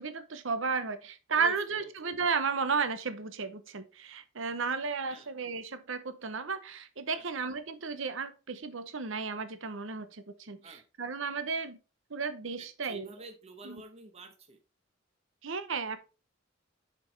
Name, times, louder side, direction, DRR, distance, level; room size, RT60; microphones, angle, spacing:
voice 1, 0.0-11.8 12.1-13.1 13.6-13.8 15.4-16.0, right 5 dB, 65° right, 11 dB, 0.8 m, -33 dB
voice 2, 1.3-1.9 5.1-5.3 7.1-7.3 10.6-10.8 12.6-14.6, right 2 dB, 30° right, 5 dB, 1.1 m, -49 dB
6.8 x 5.3 x 3.3 m, 0.31 s
head